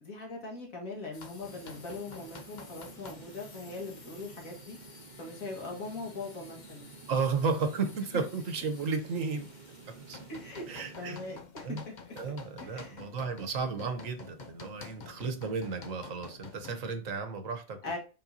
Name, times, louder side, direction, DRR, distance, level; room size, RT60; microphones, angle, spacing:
voice 1, 0.0-4.8 5.2-6.9 8.1-8.2 10.3-10.7 11.0-11.7 12.6-13.0 17.8-18.0, left 3 dB, 75° left, 2.2 m, -41 dB
sound 1, 1.1-16.9, left 4 dB, 40° left, 0.8 m, -50 dB
sound 2, 1.5-11.4, right 4 dB, 40° right, 0.8 m, -51 dB
voice 2, 7.1-9.5 10.1-10.2 10.7-11.2 11.6-11.8 12.2-17.8, right 4 dB, 70° right, 1.4 m, -33 dB
7.3 x 5.5 x 2.7 m
omnidirectional pair, 1.4 m